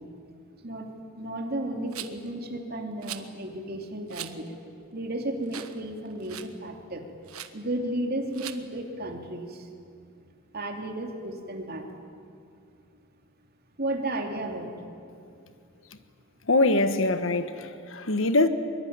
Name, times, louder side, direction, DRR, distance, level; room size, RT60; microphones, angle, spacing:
voice 1, 1.2-4.5 4.9-7.1 7.5-9.7 10.5-11.9 13.8-14.7, right 1 dB, 45° right, 2.8 m, -33 dB
Rattle, 1.9-2.3 3.0-3.3 4.1-4.3 4.8-4.9 5.5-5.8 6.0-6.5 7.3-7.5 8.3-8.6, right 11 dB, 90° right, 1.3 m, -39 dB
voice 2, 16.5-18.5, left 2 dB, 65° left, 1.4 m, -23 dB
23.5 x 22.5 x 9.6 m
head